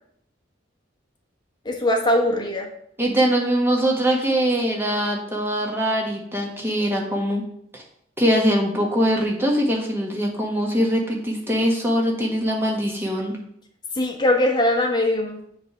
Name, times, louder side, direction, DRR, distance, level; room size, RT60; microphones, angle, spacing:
voice 1, 1.6-2.7 14.0-15.4, left 1 dB, 25° left, 2 dB, 1.1 m, -21 dB
voice 2, 3.0-7.4 7.7-7.8 8.2-13.4, equal, 10° right, -1 dB, 1.4 m, -22 dB
7.5 x 3.4 x 5.7 m, 0.70 s
head